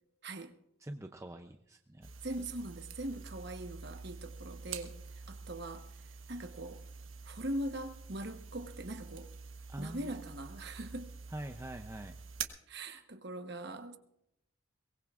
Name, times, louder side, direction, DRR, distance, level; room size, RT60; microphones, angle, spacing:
voice 1, 0.2-0.5 2.2-5.0 5.3-5.9 6.3-6.8 7.2-9.3 9.8-11.1 12.7-14.0, right 1 dB, 55° right, 1.0 m, -41 dB
voice 2, 0.8-2.1 9.7-10.1 11.3-12.1, right 1 dB, 15° right, 0.5 m, -44 dB
sound 1, 2.0-12.4, right 5 dB, 75° right, 1.2 m, -47 dB
22.5 x 19.0 x 2.4 m
head